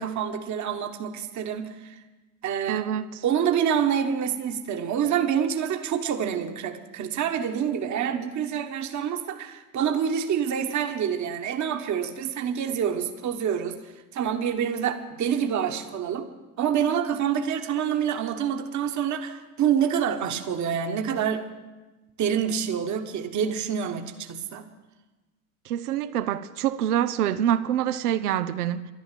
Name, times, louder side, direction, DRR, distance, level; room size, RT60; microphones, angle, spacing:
voice 1, 0.0-2.0 2.4-2.9 3.2-16.3 16.6-21.4 22.2-24.7, right 8 dB, 40° right, 1.2 m, -27 dB
voice 2, 2.7-3.2 25.7-28.9, right 10 dB, 90° right, 0.6 m, -26 dB
11.5 x 11.5 x 7.6 m
hypercardioid pair, 80°, 44 cm